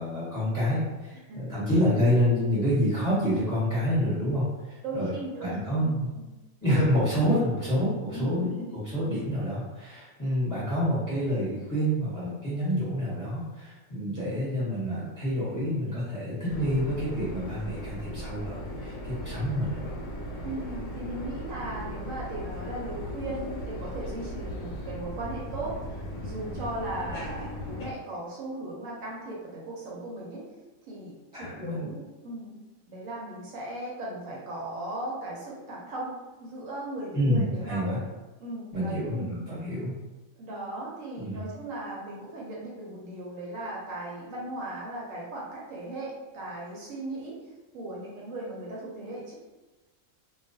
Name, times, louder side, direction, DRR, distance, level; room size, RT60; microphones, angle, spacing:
voice 1, 0.0-5.1 5.4-6.1 6.6-19.9 31.3-31.9 37.1-38.0 38.7-39.9 41.2-41.4, equal, 15° left, -10 dB, 0.9 m, -28 dB
voice 2, 1.3-1.9 4.8-5.9 7.2-7.3 8.1-8.8 20.4-30.4 30.9-32.6 32.9-38.0 38.4-39.4 40.4-47.4 47.7-49.3, right 1 dB, 70° right, -4 dB, 1.0 m, -37 dB
sound 1, 16.5-27.9, equal, 75° left, 1.0 m, -37 dB
2.3 x 2.3 x 2.6 m, 1.1 s
omnidirectional pair, 1.5 m